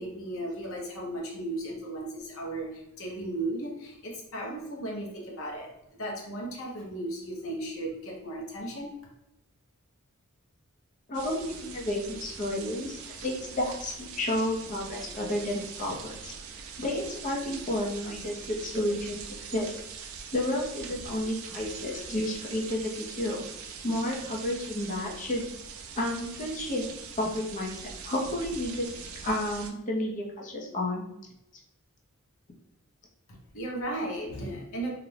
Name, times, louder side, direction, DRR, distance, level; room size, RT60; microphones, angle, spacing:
voice 1, 0.0-9.0 33.5-34.9, right 1 dB, 65° left, -2 dB, 0.7 m, -35 dB
voice 2, 11.1-16.3 16.8-19.2 19.5-19.8 20.3-23.4 23.8-25.5 26.0-26.8 27.2-28.9 29.2-31.1, left 1 dB, 35° left, -1 dB, 0.5 m, -31 dB
sound 1, 11.1-29.7, right 6 dB, 70° right, 0.3 m, -42 dB
2.4 x 2.1 x 3.1 m, 0.85 s
head